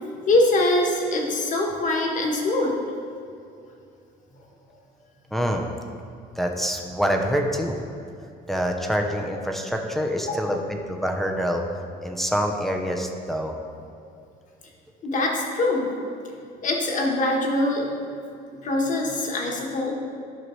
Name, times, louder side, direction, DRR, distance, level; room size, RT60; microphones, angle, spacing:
voice 1, 0.3-2.8 4.4-4.5 10.2-10.6 15.0-15.9 16.6-17.9 18.6-19.9, left 2 dB, 50° left, 0 dB, 1.4 m, -23 dB
voice 2, 5.3-5.7 6.4-7.7 8.5-11.6 12.0-13.5, equal, ahead, 2 dB, 0.7 m, -26 dB
11.0 x 5.8 x 3.2 m, 2.5 s
cardioid pair, 110°, 17 cm